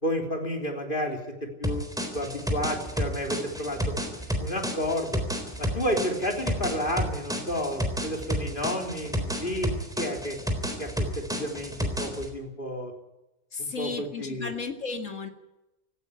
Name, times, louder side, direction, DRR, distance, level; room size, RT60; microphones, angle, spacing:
voice 1, 0.0-1.2 1.6-3.9 4.4-5.2 5.6-10.4 10.8-12.9 13.6-14.5, equal, 40° left, 3 dB, 3.8 m, -31 dB
sound 1, 1.6-12.3, equal, 5° right, 3.7 m, -31 dB
voice 2, 13.5-15.3, left 4 dB, 70° left, 6 dB, 2.6 m, -34 dB
17.5 x 16.0 x 9.8 m, 0.94 s
omnidirectional pair, 1.4 m